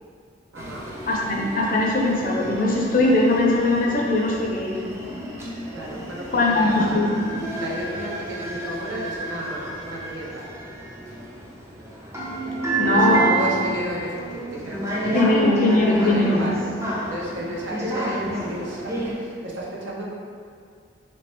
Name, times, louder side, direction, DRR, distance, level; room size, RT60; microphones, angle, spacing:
voice 1, 0.5-0.9 5.7-7.2 7.5-10.5 12.7-15.5 15.8-20.1, right 1 dB, 75° right, -4 dB, 0.7 m, -33 dB
sound 1, 0.6-19.1, right 2 dB, 15° right, 0.4 m, -30 dB
voice 2, 1.1-5.0 6.3-7.4 12.8-13.3 15.0-16.4, left 2 dB, 45° left, -2 dB, 0.5 m, -20 dB
3.1 x 3.0 x 3.0 m, 2.2 s
head